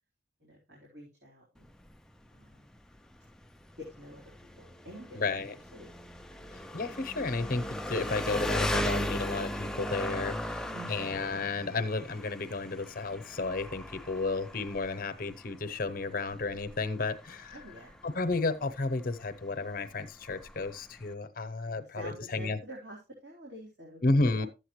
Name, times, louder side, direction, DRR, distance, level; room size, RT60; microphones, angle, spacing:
voice 1, 0.4-1.7 2.3-2.7 3.9-5.9 6.3-6.5 10.7-11.1 17.5-17.9 21.7-24.0 24.4-24.5, right 1 dB, 65° right, 3.6 m, -48 dB
Engine, 1.6-21.1, equal, 5° left, 0.4 m, -38 dB
voice 2, 5.1-5.5 6.7-10.6 10.9-17.6 18.0-22.6 24.0-24.5, left 3 dB, 50° left, 0.8 m, -32 dB
12.5 x 8.0 x 3.1 m
head